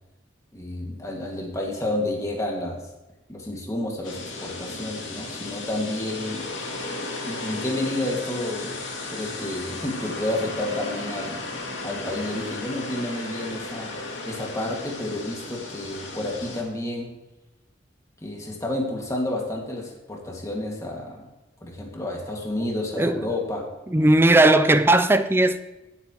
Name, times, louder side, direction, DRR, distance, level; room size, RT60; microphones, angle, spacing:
voice 1, 0.5-2.8 3.3-6.5 7.2-8.8 9.1-11.4 11.8-17.1 18.2-21.3 21.6-23.7 23.9-24.1, left 1 dB, 15° left, 2.0 m, -30 dB
sound 1, 4.0-16.6, left 2 dB, 90° left, 2.3 m, -35 dB
voice 2, 23.9-25.6, right 2 dB, 15° right, 0.5 m, -17 dB
17.5 x 8.5 x 3.0 m
head